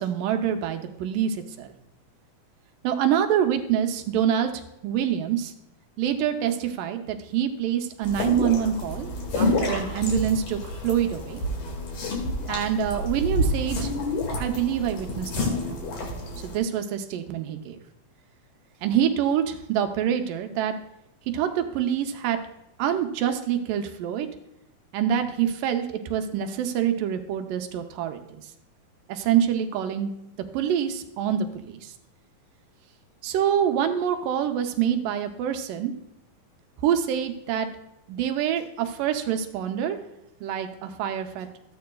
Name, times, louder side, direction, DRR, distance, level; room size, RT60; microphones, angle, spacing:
voice 1, 0.0-1.7 2.8-5.5 6.0-11.4 12.5-13.9 14.4-15.8 16.4-17.8 18.8-20.7 21.3-22.4 22.8-24.3 24.9-28.4 29.1-30.1 30.5-31.9 33.2-35.9 36.8-37.7 38.1-40.0 40.4-41.5, right 9 dB, 75° right, 6 dB, 2.2 m, -26 dB
sound 1, 8.0-16.6, left 1 dB, 65° left, 3.5 m, -29 dB
14.5 x 9.4 x 2.3 m, 0.86 s
omnidirectional pair, 4.1 m